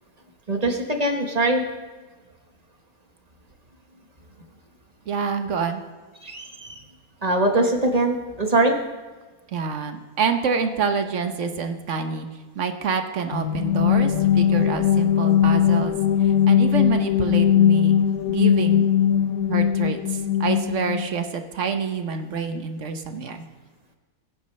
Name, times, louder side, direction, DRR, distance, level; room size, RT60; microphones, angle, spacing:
voice 1, 0.5-1.6 6.2-6.8 7.2-8.7, right 2 dB, 30° right, 4 dB, 1.1 m, -22 dB
voice 2, 5.1-5.8 9.5-12.3 12.6-18.0 18.3-18.8 19.5-23.4, right 5 dB, 55° right, 7 dB, 1.1 m, -27 dB
sound 1, 13.3-21.1, left 9 dB, 70° left, 1.1 m, -19 dB
21.5 x 9.5 x 3.2 m, 1.3 s
omnidirectional pair, 1.7 m